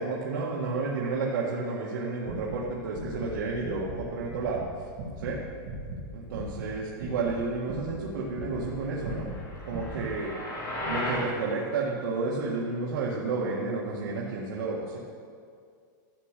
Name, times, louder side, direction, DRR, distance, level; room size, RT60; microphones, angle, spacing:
voice 1, 0.0-4.6 5.2-5.4 6.1-9.3 9.7-10.4 10.8-15.0, right 3 dB, 80° right, -5 dB, 1.8 m, -31 dB
sound 1, 2.2-3.3 3.6-4.0 4.3-6.7 7.0-8.7 9.0-10.1, right 1 dB, 40° right, 2.9 m, -38 dB
sound 2, 9.1-11.3, left 1 dB, 35° left, 2.7 m, -35 dB
12.5 x 7.4 x 6.7 m, 2.2 s
supercardioid pair, 160°, 11 cm